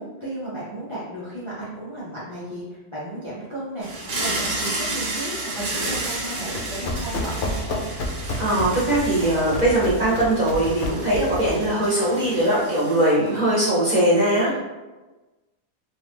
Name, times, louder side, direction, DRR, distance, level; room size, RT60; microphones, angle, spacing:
voice 1, 0.0-7.9, right 1 dB, 30° left, -8 dB, 0.5 m, -34 dB
sound 1, 3.8-13.3, right 2 dB, 85° right, 1.4 m, -32 dB
Run, 6.2-11.7, left 2 dB, 65° left, 0.7 m, -31 dB
voice 2, 8.4-14.6, right 1 dB, 35° right, -8 dB, 1.0 m, -20 dB
3.0 x 2.6 x 3.5 m, 1.1 s
omnidirectional pair, 1.6 m